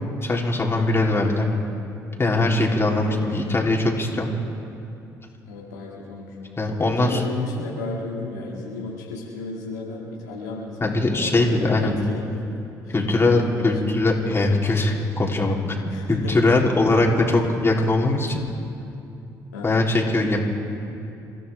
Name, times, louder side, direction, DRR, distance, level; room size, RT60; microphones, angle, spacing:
voice 1, 0.2-1.5 2.2-4.3 6.6-7.2 10.8-11.9 12.9-15.6 16.1-18.4 19.6-20.4, left 2 dB, 30° left, -2 dB, 3.4 m, -21 dB
voice 2, 2.9-3.8 5.5-6.3 6.8-12.4 12.8-12.9 13.3-13.8 15.9-16.4 19.5-19.8, left 3 dB, 90° left, -4 dB, 2.3 m, -34 dB
29.0 x 14.0 x 3.5 m, 2.7 s
hypercardioid pair, 50°, 9 cm